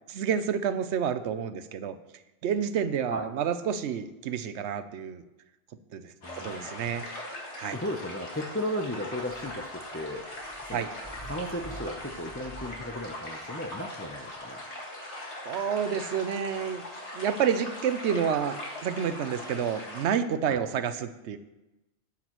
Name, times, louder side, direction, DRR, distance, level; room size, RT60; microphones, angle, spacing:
voice 1, 0.1-2.0 2.4-5.2 5.9-7.0 7.5-7.8 10.7-10.9 15.4-16.8 17.1-21.4, right 7 dB, 75° right, 11 dB, 0.9 m, -29 dB
sound 1, 6.2-20.1, left 1 dB, 75° left, 2.2 m, -40 dB
voice 2, 6.2-7.0 7.7-10.3 10.7-10.9 11.2-14.6 20.5-20.6, left 1 dB, 20° left, 4 dB, 0.4 m, -35 dB
sound 2, 9.3-13.0 14.3-14.4, right 2 dB, ahead, 3.4 m, -46 dB
12.0 x 8.7 x 3.0 m, 0.99 s
omnidirectional pair, 1.2 m